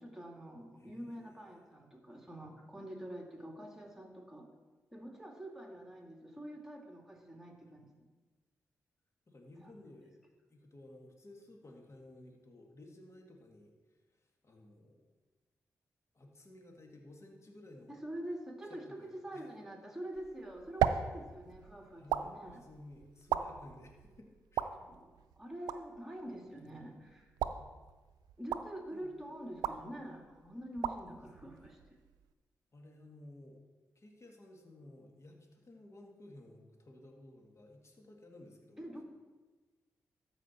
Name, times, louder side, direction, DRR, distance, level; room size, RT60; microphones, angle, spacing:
voice 1, 0.0-4.5 4.9-8.0 9.6-9.7 18.0-22.6 24.8-27.3 28.4-31.8 38.8-39.0, right 1 dB, 5° right, 0 dB, 2.6 m, -46 dB
voice 2, 0.8-1.6 9.3-10.1 10.5-15.0 16.1-18.0 18.6-19.4 22.0-24.7 27.5-27.8 28.9-29.1 31.4-31.5 32.7-33.6 34.0-38.9, left 1 dB, 45° left, 1 dB, 2.1 m, -56 dB
sound 1, 20.1-32.3, right 9 dB, 90° right, 0.3 m, -39 dB
13.5 x 5.1 x 4.4 m, 1.3 s
supercardioid pair, 40°, 7 cm